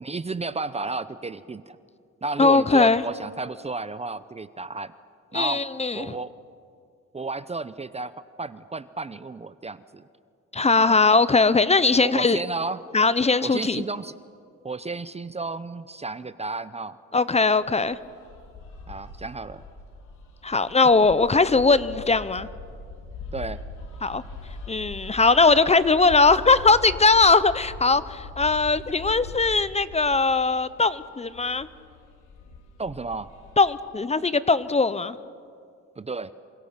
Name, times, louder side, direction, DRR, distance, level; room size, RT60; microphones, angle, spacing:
voice 1, 0.0-1.8 2.2-4.9 5.3-5.6 5.9-6.3 7.1-10.0 10.7-10.9 12.0-12.8 13.4-14.1 14.6-17.0 18.9-19.6 23.3-23.6 32.8-33.3 36.0-36.3, right 3 dB, 20° right, 14 dB, 0.7 m, -32 dB
voice 2, 2.4-3.0 5.3-6.1 10.5-12.4 12.9-13.8 17.1-18.0 20.4-22.5 24.0-24.2 24.7-31.7 33.6-35.2, left 3 dB, 20° left, 15 dB, 0.8 m, -20 dB
sound 1, 17.6-33.8, left 3 dB, 85° left, 3.4 m, -41 dB
27.5 x 24.5 x 5.9 m, 2.3 s
cardioid pair, 90°, 30 cm